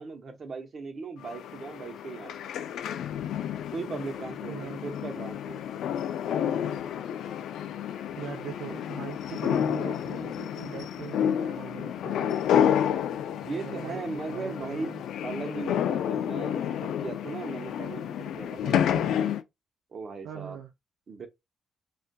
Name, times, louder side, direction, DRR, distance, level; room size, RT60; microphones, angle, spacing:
voice 1, 0.0-2.4 3.7-5.6 13.3-19.1 19.9-20.6 21.1-21.3, right 4 dB, 45° right, 0.8 m, -38 dB
sound 1, 1.2-19.4, left 9 dB, 80° left, 0.3 m, -30 dB
voice 2, 4.5-4.8 8.2-12.7 13.5-15.0 20.2-20.7, right 9 dB, 80° right, 0.4 m, -41 dB
2.6 x 2.2 x 2.2 m
cardioid pair, 90°, 0 cm